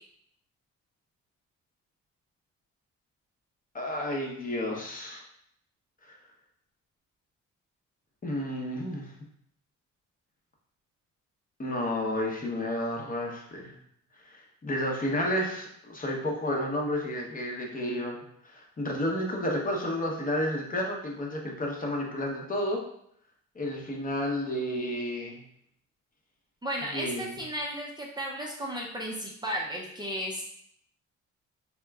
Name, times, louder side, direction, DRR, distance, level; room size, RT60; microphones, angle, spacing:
voice 1, 3.7-5.2 6.0-6.2 8.2-9.1 11.6-13.8 14.2-22.8 23.5-25.4 26.9-27.3, left 1 dB, 30° left, 0 dB, 0.7 m, -31 dB
voice 2, 26.6-30.4, equal, 15° right, -3 dB, 0.5 m, -34 dB
3.4 x 2.9 x 2.3 m, 0.70 s
cardioid pair, 90°, 30 cm